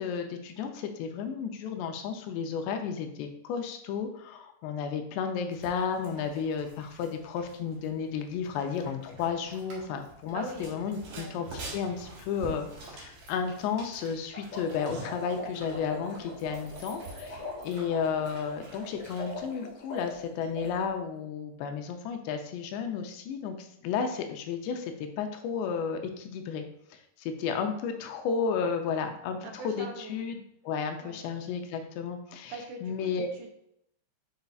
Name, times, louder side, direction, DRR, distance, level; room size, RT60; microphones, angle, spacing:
voice 1, 0.0-11.5 11.7-26.6 26.9-30.4 30.6-32.6 32.8-33.3, left 6 dB, 85° left, 5 dB, 2.9 m, -33 dB
sound 1, 5.5-19.5, right 2 dB, 55° right, 2.5 m, -47 dB
voice 2, 10.3-10.7 11.1-11.3 29.4-30.2 31.0-31.2 31.7-31.8 32.5-33.5, right 3 dB, 85° right, 2 dB, 3.0 m, -42 dB
sound 2, 14.3-20.8, left 2 dB, 65° left, 1.0 m, -42 dB
7.9 x 5.3 x 2.4 m, 0.74 s
omnidirectional pair, 4.8 m